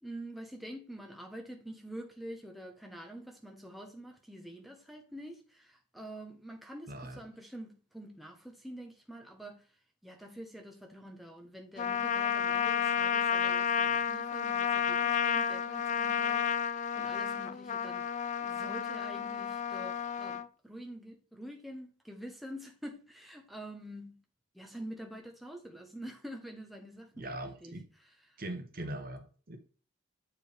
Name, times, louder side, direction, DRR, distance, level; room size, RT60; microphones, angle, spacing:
voice 1, 0.0-9.7 10.0-18.2 18.4-24.2 24.5-27.7 28.0-28.4 28.8-29.0, right 1 dB, ahead, 1.0 m, -47 dB
voice 2, 6.9-7.2 27.1-27.9 28.4-29.6, right 1 dB, 45° right, 1.2 m, -41 dB
Trumpet, 11.8-20.5, left 8 dB, 35° left, 0.3 m, -31 dB
8.4 x 4.7 x 3.4 m
head